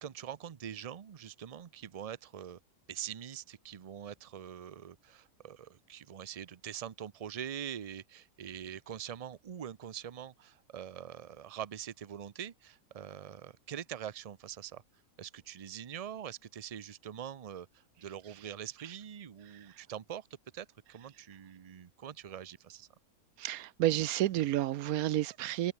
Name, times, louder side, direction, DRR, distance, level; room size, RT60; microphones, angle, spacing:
voice 1, 0.0-2.6 2.9-14.8 15.2-20.3 20.5-22.9, right 9 dB, 60° right, 0.3 m, -44 dB
voice 2, 23.4-25.7, right 14 dB, 80° right, 1.1 m, -30 dB
omnidirectional pair, 1.5 m